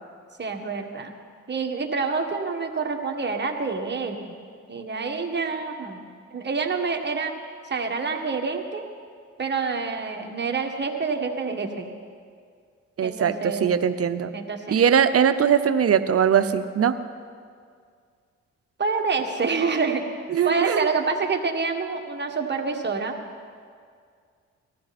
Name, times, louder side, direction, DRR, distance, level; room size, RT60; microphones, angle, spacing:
voice 1, 0.4-1.1 1.5-4.3 4.7-6.0 6.3-7.3 7.6-8.8 9.4-11.9 13.0-13.7 14.3-14.8 18.8-23.2, right 4 dB, 35° right, 3 dB, 1.7 m, -27 dB
voice 2, 13.0-14.3 14.7-16.9 20.3-20.9, right 8 dB, 50° right, 11 dB, 0.8 m, -21 dB
19.0 x 13.5 x 4.3 m, 2.1 s
cardioid pair, 70°, 29 cm